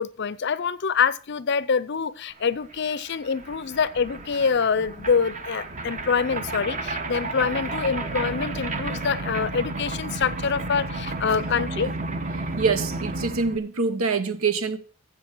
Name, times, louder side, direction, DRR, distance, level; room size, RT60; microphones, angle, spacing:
voice 1, 0.0-11.9, left 6 dB, 55° left, 0.5 m, -25 dB
sound 1, 2.4-2.5 2.7-13.6, right 2 dB, 35° right, 1.1 m, -32 dB
voice 2, 12.6-14.8, right 4 dB, 80° right, 1.0 m, -25 dB
13.5 x 7.8 x 4.5 m
head